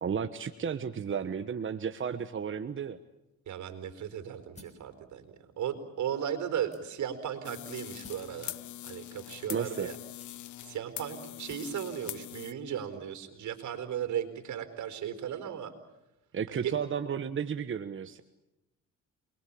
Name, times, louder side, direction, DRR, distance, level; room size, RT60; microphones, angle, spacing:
voice 1, 0.0-3.0 9.5-9.9 16.3-18.2, right 7 dB, 40° right, 9 dB, 1.3 m, -33 dB
voice 2, 3.5-8.6 8.8-10.0 10.6-15.7 16.5-16.7, right 9 dB, 75° right, 10 dB, 4.4 m, -36 dB
sound 1, 4.6-4.9 5.7-5.8 6.7-7.2 8.0-8.3 9.3-9.4 10.2-10.7 11.5-11.8, left 2 dB, 20° left, 5.8 m, -53 dB
sound 2, 7.4-12.5, left 14 dB, 75° left, 0.9 m, -43 dB
29.0 x 22.0 x 8.7 m, 0.92 s
cardioid pair, 90°, 30 cm